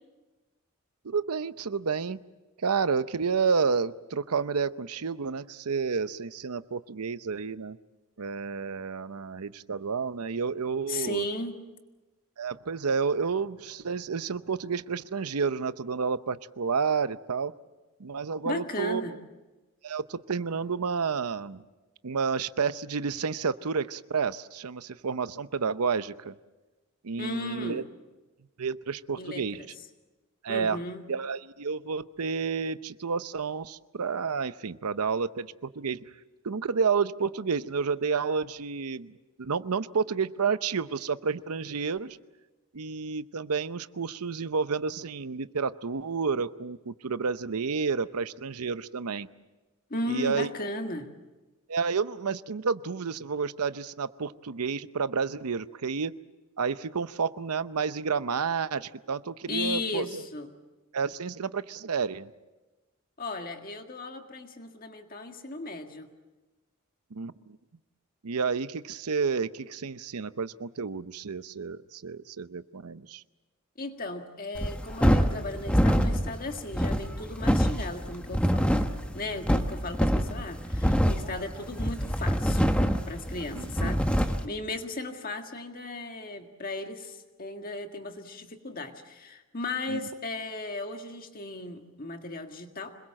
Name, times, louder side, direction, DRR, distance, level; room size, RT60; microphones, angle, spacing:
voice 1, 1.0-2.2 2.6-7.8 8.2-11.2 12.4-17.5 18.0-19.0 19.8-21.6 22.0-26.3 27.0-27.8 28.6-29.6 30.4-30.8 31.1-36.0 36.4-39.1 39.4-42.2 42.7-49.3 50.1-50.5 51.7-56.1 56.6-60.3 60.9-62.3 67.1-67.6 68.2-73.2 83.6-83.9 89.9-90.0, right 5 dB, 90° right, 14 dB, 0.7 m, -30 dB
voice 2, 10.9-11.6 18.4-19.2 27.2-27.9 29.2-29.7 30.5-31.1 49.9-51.1 59.5-60.5 63.2-66.1 73.8-78.7 79.1-82.7 83.1-93.0, left 2 dB, 40° left, 5 dB, 1.8 m, -36 dB
sound 1, 74.5-84.5, equal, 5° left, 1.0 m, -25 dB
26.0 x 21.5 x 7.7 m, 1.1 s
head